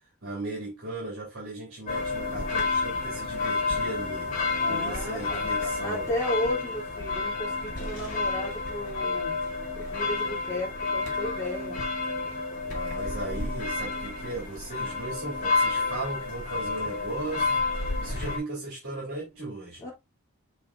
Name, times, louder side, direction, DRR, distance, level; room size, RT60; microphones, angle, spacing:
voice 1, 0.2-6.1 12.7-17.6 18.0-19.9, right 2 dB, 55° right, 3.1 m, -37 dB
sound 1, 1.9-18.4, left 3 dB, 35° left, 2.6 m, -30 dB
voice 2, 4.5-5.4 5.8-9.3 9.7-11.8 19.8-19.9, left 1 dB, 15° left, 3.4 m, -34 dB
6.3 x 5.4 x 2.8 m
head